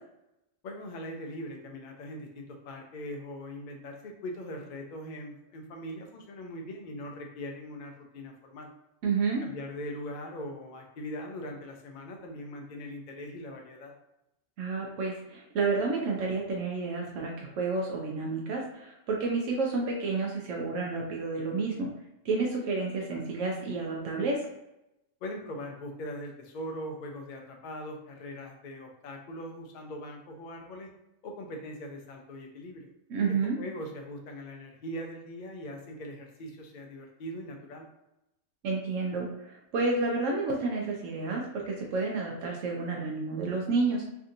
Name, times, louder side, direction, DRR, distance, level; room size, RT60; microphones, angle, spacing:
voice 1, 0.6-8.7 9.4-13.9 25.2-30.9 31.2-32.9 33.6-37.9, left 1 dB, 55° left, 2 dB, 0.5 m, -41 dB
voice 2, 9.0-9.4 14.6-21.9 22.2-24.4 33.1-33.6 38.6-44.0, right 3 dB, 80° right, -1 dB, 1.0 m, -30 dB
3.4 x 2.7 x 2.5 m, 0.89 s
omnidirectional pair, 1.3 m